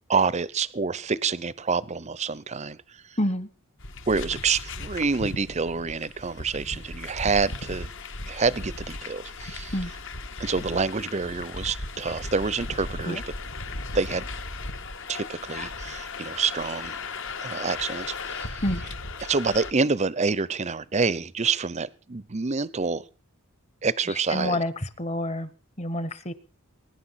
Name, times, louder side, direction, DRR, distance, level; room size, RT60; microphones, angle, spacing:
voice 1, 0.1-2.8 4.1-7.9 8.3-9.7 10.4-13.2 13.9-14.3 15.1-17.0 17.4-18.6 19.2-23.0 23.8-24.6, right 4 dB, 30° right, 20 dB, 0.7 m, -27 dB
voice 2, 3.2-3.5 9.7-9.9 13.1-13.2 18.6-18.8 24.3-24.7 25.0-25.5 25.8-26.3, left 1 dB, 30° left, 15 dB, 1.2 m, -27 dB
sound 1, 3.8-19.7, left 3 dB, 60° left, 1.7 m, -36 dB
22.0 x 10.5 x 5.8 m, 0.38 s
head